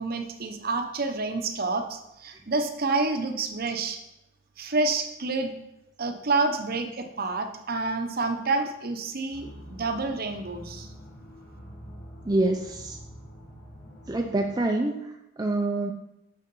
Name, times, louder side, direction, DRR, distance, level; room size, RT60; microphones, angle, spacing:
voice 1, 0.0-4.0 4.6-5.5 6.0-10.9, right 3 dB, 45° right, 7 dB, 0.8 m, -28 dB
sound 1, 9.3-14.6, equal, 50° left, 3.4 m, -46 dB
voice 2, 12.3-13.0 14.1-15.9, right 2 dB, 20° right, 2 dB, 0.5 m, -26 dB
6.7 x 6.3 x 5.4 m, 0.89 s
head